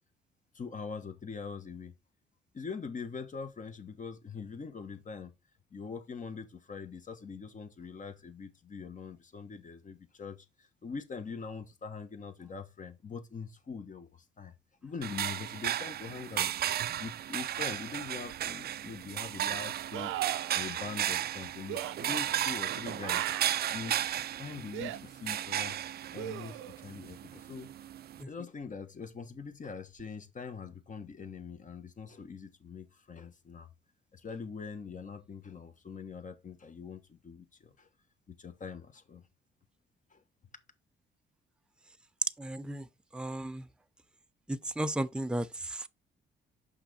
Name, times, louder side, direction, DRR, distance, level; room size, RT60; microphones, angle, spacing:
voice 1, 0.5-1.9 2.5-5.3 5.7-14.5 14.8-16.5 16.7-20.2 20.5-23.3 23.7-24.0 24.4-25.8 26.1-27.7 28.3-33.7 34.1-37.9 38.3-39.2 40.1-40.2, left 5 dB, 40° left, 1.3 m, -43 dB
sound 1, 15.0-28.2, right 11 dB, 50° right, 0.4 m, -35 dB
sound 2, 18.3-18.4 19.9-20.6 21.7-22.0 23.0-23.8 24.7-25.0 26.2-26.8 30.0-30.1, right 13 dB, 90° right, 0.6 m, -37 dB
voice 2, 42.4-42.9 43.1-43.6 44.5-45.9, right 1 dB, 5° right, 0.5 m, -34 dB
5.8 x 5.1 x 4.2 m
cardioid pair, 90°, 20 cm